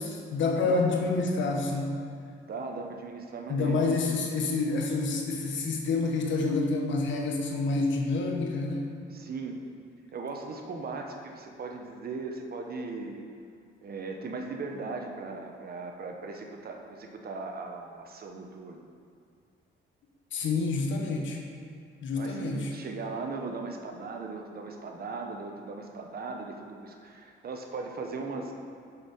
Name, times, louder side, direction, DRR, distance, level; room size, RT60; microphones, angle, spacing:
voice 1, 0.0-2.0 3.5-8.9 20.3-21.4 22.0-22.7, left 3 dB, 70° left, 2 dB, 1.2 m, -28 dB
voice 2, 2.4-4.0 9.1-9.6 10.1-13.2 13.8-18.9 22.2-28.5, right 3 dB, 50° right, 3 dB, 1.0 m, -38 dB
6.9 x 6.2 x 5.5 m, 2.3 s
cardioid pair, 90°, 20 cm